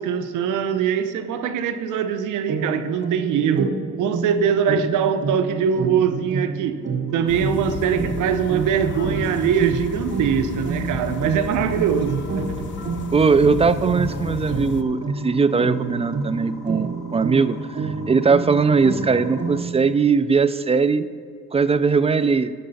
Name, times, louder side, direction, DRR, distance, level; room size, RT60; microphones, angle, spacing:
voice 1, 0.0-6.8 7.1-12.5, right 7 dB, 85° right, 10 dB, 0.7 m, -22 dB
sound 1, 2.5-19.9, right 4 dB, 40° right, 0.9 m, -29 dB
sound 2, 7.1-19.6, left 1 dB, ahead, 1.9 m, -44 dB
sound 3, 7.3-14.8, left 8 dB, 40° left, 0.5 m, -33 dB
voice 2, 13.1-17.6 17.8-21.1 21.5-22.5, right 5 dB, 20° right, 13 dB, 0.3 m, -19 dB
10.5 x 6.6 x 4.1 m, 2.2 s
cardioid pair, 90°, 30 cm